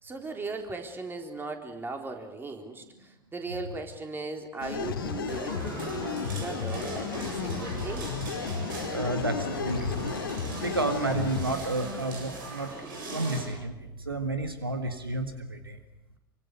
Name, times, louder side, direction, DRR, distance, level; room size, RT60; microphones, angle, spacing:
voice 1, 0.0-8.2, right 3 dB, 20° right, 4 dB, 4.1 m, -38 dB
sound 1, 4.6-11.5, left 5 dB, 75° left, 2.2 m, -33 dB
sound 2, 5.3-13.4, right 2 dB, 65° right, 7.8 m, -39 dB
voice 2, 8.9-12.7 13.1-15.8, right 2 dB, 85° right, 8 dB, 1.8 m, -31 dB
27.5 x 24.5 x 6.8 m, 0.93 s
figure-of-eight pair, 75°, 12 cm